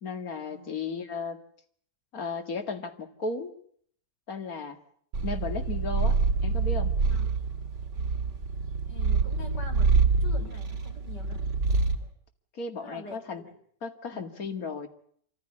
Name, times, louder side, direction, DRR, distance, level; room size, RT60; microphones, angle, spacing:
voice 1, 0.0-1.4 2.1-3.5 4.3-4.8 5.2-6.9 12.5-13.4 13.8-14.9, left 4 dB, 55° left, 7 dB, 2.5 m, -35 dB
Purr, 5.1-12.1, right 4 dB, 75° right, 3.0 m, -26 dB
voice 2, 8.8-9.9 10.2-11.4 12.8-13.5 14.1-14.2, equal, 75° left, 4 dB, 5.1 m, -45 dB
26.5 x 15.0 x 9.8 m, 0.63 s
omnidirectional pair, 1.9 m